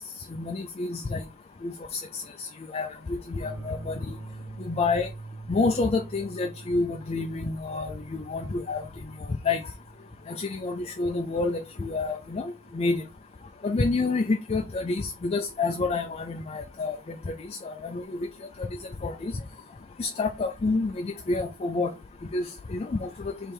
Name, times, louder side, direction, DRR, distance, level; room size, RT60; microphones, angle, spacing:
voice 1, 0.4-1.2 1.6-2.2 2.7-3.9 4.7-5.1 5.5-7.9 8.3-8.8 9.5-9.6 10.4-13.0 13.6-17.0 17.6-18.0 19.0-19.1 20.0-21.9 22.3-22.5 22.7-23.1, left 3 dB, 30° left, 5 dB, 0.4 m, -28 dB
sound 1, 3.4-13.3, right 3 dB, 10° right, 0.7 m, -45 dB
3.4 x 3.2 x 4.5 m, 0.28 s
head